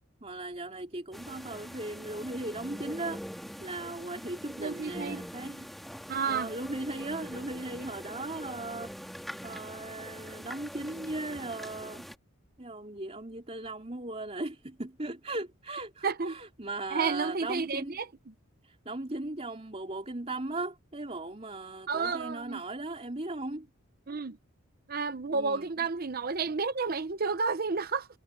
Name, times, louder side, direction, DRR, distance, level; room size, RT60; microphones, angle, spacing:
voice 1, 0.2-3.2 3.6-5.7 6.3-8.9 9.4-12.1 12.6-17.9 18.6-23.7 25.3-25.7, right 2 dB, 30° right, 3.5 m, -38 dB
sound 1, 1.1-12.1, equal, ahead, 2.2 m, -43 dB
voice 2, 4.6-5.3 6.1-6.5 16.0-16.4 16.9-18.1 21.9-22.6 24.1-24.4 24.9-28.1, right 4 dB, 45° right, 0.8 m, -31 dB
head